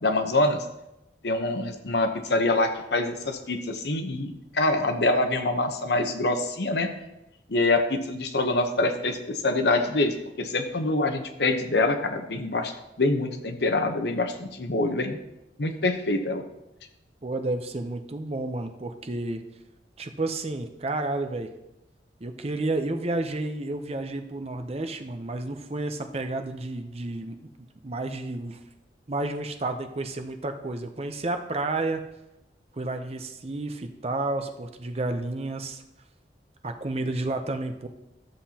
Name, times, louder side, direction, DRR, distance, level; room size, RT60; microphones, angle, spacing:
voice 1, 0.0-0.6 1.2-6.9 7.5-15.2 15.6-16.4, left 2 dB, 65° left, 5 dB, 0.9 m, -25 dB
voice 2, 17.2-19.4 20.0-21.5 22.2-27.4 27.8-28.6 29.1-32.0 32.7-35.8 36.6-37.9, right 2 dB, 35° right, 6 dB, 0.6 m, -31 dB
13.0 x 7.5 x 2.9 m, 0.91 s
head